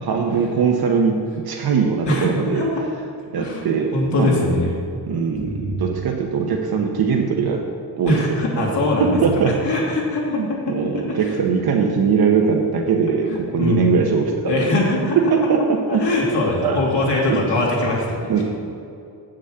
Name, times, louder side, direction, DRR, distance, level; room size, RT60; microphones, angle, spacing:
voice 1, 0.0-2.6 3.3-4.5 5.1-7.6 8.0-8.2 8.6-8.7 9.0-9.6 10.2-14.8 15.3-16.0 16.6-16.8 17.3-17.4 18.3-18.4, right 5 dB, 60° right, 2 dB, 0.9 m, -21 dB
voice 2, 2.1-2.8 3.4-3.6 3.9-4.7 5.4-5.8 8.0-9.2 9.6-10.7 11.1-11.3 13.3-13.9 14.5-15.2 15.9-18.4, left 2 dB, 75° left, -4 dB, 2.7 m, -22 dB
8.0 x 6.2 x 7.6 m, 2.6 s
wide cardioid pair, 170°, 43 cm